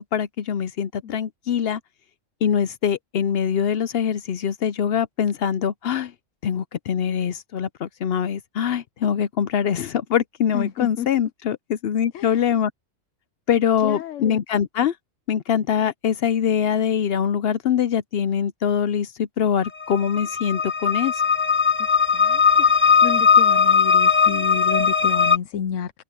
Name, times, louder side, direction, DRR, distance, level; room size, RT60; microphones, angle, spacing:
voice 1, 0.0-1.8 2.4-6.1 6.4-12.7 13.5-14.9 15.3-21.1, left 8 dB, 60° left, 0.7 m, -23 dB
voice 2, 10.5-11.1 12.1-12.6 13.8-14.4 22.1-22.4 22.7-25.9, left 9 dB, 90° left, 1.1 m, -30 dB
sound 1, 19.6-25.4, left 6 dB, 10° left, 0.6 m, -18 dB
omnidirectional pair, 1.3 m